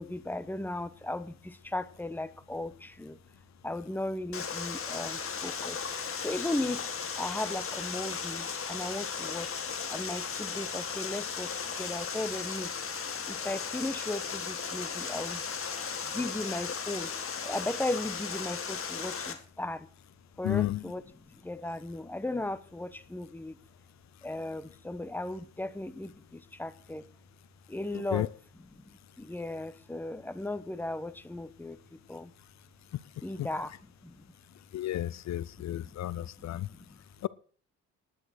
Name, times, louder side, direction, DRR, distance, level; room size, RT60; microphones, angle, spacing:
voice 1, 0.0-3.2 3.6-5.8 6.2-6.8 7.2-9.6 9.9-12.7 13.3-15.4 16.0-17.1 17.4-19.9 20.4-23.6 24.2-27.1 27.7-28.3 28.6-32.3 33.2-34.2 35.6-37.0, left 1 dB, 5° left, 1.0 m, -37 dB
Water, 4.3-19.3, left 6 dB, 45° left, 2.1 m, -36 dB
voice 2, 20.4-20.8 28.1-28.3 33.4-33.5 34.7-36.7 37.2-37.3, left 14 dB, 65° left, 0.6 m, -32 dB
10.5 x 10.0 x 6.4 m
cardioid pair, 90°, 30 cm